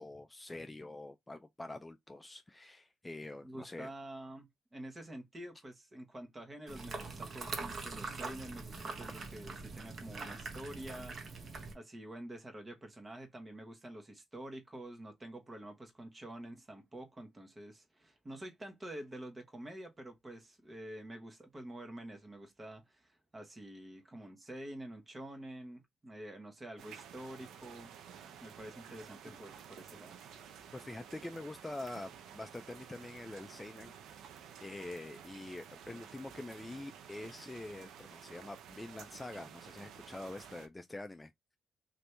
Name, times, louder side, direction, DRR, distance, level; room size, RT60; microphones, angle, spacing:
voice 1, 0.0-3.9 29.3-29.4 30.7-33.9 34.6-41.3, left 2 dB, 15° left, 0.3 m, -45 dB
voice 2, 3.4-11.1 11.7-27.9 28.4-30.1, right 1 dB, 25° right, 1.1 m, -48 dB
sound 1, 6.7-11.7, right 4 dB, 45° right, 0.9 m, -43 dB
sound 2, 26.8-40.7, right 8 dB, 80° right, 0.5 m, -53 dB
2.9 x 2.6 x 3.2 m
cardioid pair, 90°, 0 cm